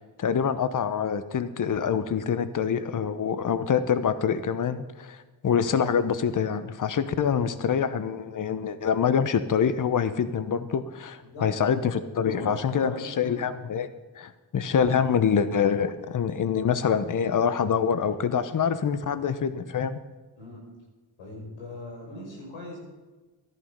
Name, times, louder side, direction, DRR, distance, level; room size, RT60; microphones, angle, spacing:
voice 1, 0.2-13.9 14.2-20.0, left 7 dB, 45° left, 13 dB, 1.0 m, -25 dB
voice 2, 11.2-12.0 12.2-13.4 14.9-15.0 19.0-19.1 20.4-20.6 21.2-22.8, left 1 dB, 90° left, -1 dB, 5.4 m, -40 dB
14.0 x 11.5 x 5.3 m, 1.2 s
cardioid pair, 75°, 45 cm